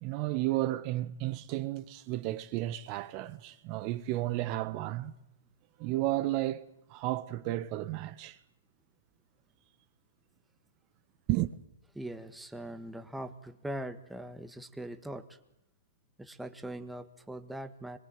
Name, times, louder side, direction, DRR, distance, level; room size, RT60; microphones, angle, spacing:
voice 1, 0.0-5.1 5.8-8.4 11.3-11.5, right 16 dB, 35° right, 1.5 m, -33 dB
voice 2, 12.0-15.4 16.2-18.0, right 1 dB, 5° right, 1.8 m, -41 dB
25.5 x 22.0 x 9.2 m
hypercardioid pair, 135°, 0 cm